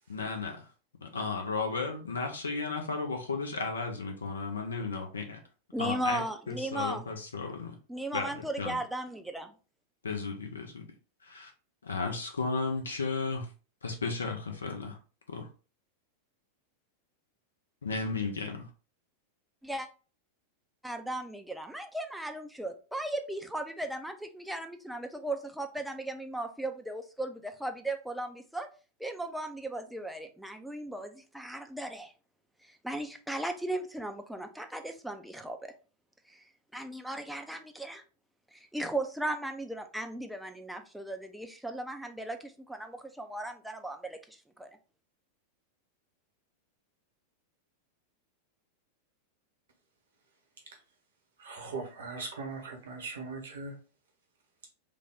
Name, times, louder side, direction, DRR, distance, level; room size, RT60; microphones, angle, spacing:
voice 1, 0.1-0.7 1.0-5.4 5.8-7.8 8.1-8.8 10.0-10.8 11.2-11.5 11.8-13.5 13.8-15.0 15.3-15.5 17.8-18.7, left 4 dB, 70° left, 4 dB, 0.5 m, -34 dB
voice 2, 5.7-7.0 7.9-9.5 19.6-19.9 20.8-28.7 29.0-32.1 32.8-35.7 36.3-36.4 36.7-38.0 38.7-44.7, right 1 dB, ahead, 5 dB, 0.5 m, -37 dB
voice 3, 51.4-53.7, right 4 dB, 65° right, 4 dB, 1.0 m, -39 dB
3.3 x 2.2 x 3.6 m, 0.36 s
figure-of-eight pair, 90°, 0 cm